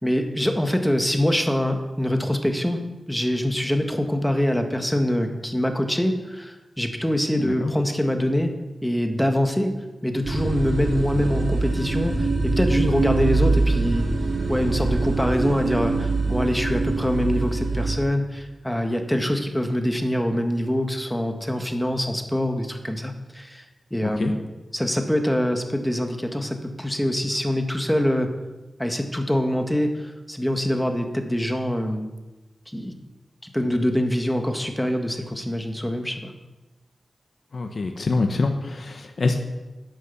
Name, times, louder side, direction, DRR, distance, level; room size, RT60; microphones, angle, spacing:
voice 1, 0.0-9.7 10.0-14.1 14.5-23.6 23.9-24.4 24.7-28.3 28.8-32.1 32.7-32.9 33.5-36.3, equal, 5° left, 5 dB, 1.6 m, -24 dB
voice 2, 7.4-7.7 24.0-24.3 37.5-39.4, left 3 dB, 65° left, 4 dB, 1.1 m, -25 dB
sound 1, 10.2-18.0, right 3 dB, 75° right, 2.1 m, -24 dB
10.5 x 8.8 x 7.1 m, 1.1 s
wide cardioid pair, 70°, 0 cm